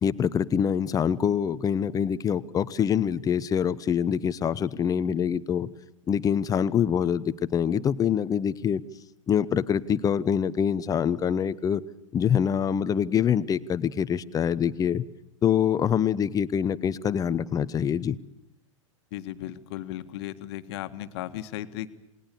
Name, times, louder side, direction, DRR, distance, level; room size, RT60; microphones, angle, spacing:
voice 1, 0.0-5.7 6.1-8.8 9.3-11.8 12.1-15.0 15.4-18.2, left 8 dB, 20° left, 16 dB, 1.0 m, -25 dB
voice 2, 19.1-21.9, left 13 dB, 50° left, 10 dB, 1.7 m, -36 dB
28.0 x 19.5 x 7.0 m, 0.89 s
figure-of-eight pair, 100°, 17 cm